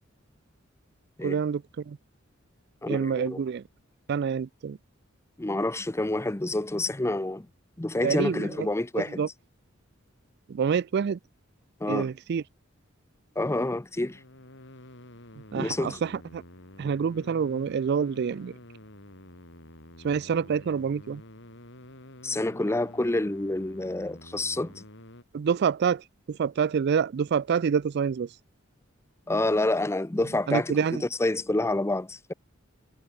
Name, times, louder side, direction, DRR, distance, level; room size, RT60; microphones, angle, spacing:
voice 1, 1.2-2.0 2.9-3.6 4.1-4.8 8.0-8.7 9.0-9.3 10.5-11.2 11.9-12.4 15.5-16.4 16.8-18.5 20.0-21.2 25.3-28.3 30.5-31.0, right 6 dB, 55° right, 0.4 m, -27 dB
voice 2, 2.8-3.4 5.4-7.5 7.8-9.2 11.8-12.1 13.4-14.2 15.6-16.0 22.2-24.8 29.3-32.3, left 2 dB, 15° left, 0.6 m, -28 dB
sound 1, 13.9-25.2, left 1 dB, 65° left, 5.4 m, -49 dB
head